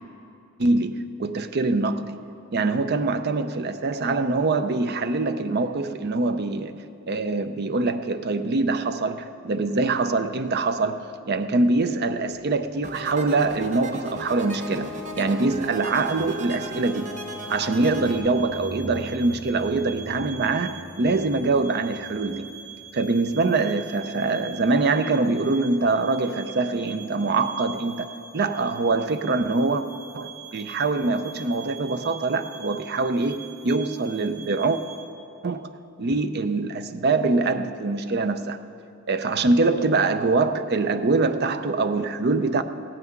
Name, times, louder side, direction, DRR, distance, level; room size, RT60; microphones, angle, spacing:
voice 1, 0.6-2.2 2.5-6.8 7.1-17.1 17.5-22.5 22.9-29.8 30.1-34.8 35.4-35.7 36.0-38.6 39.1-42.6, right 3 dB, 50° right, 0.6 m, -24 dB
sound 1, 12.1-23.7 24.5-24.8, equal, 35° left, 3.2 m, -46 dB
sound 2, 12.8-18.2, equal, 35° right, 0.9 m, -36 dB
sound 3, 15.8-35.0, right 7 dB, 80° right, 1.1 m, -44 dB
16.0 x 5.8 x 9.4 m
head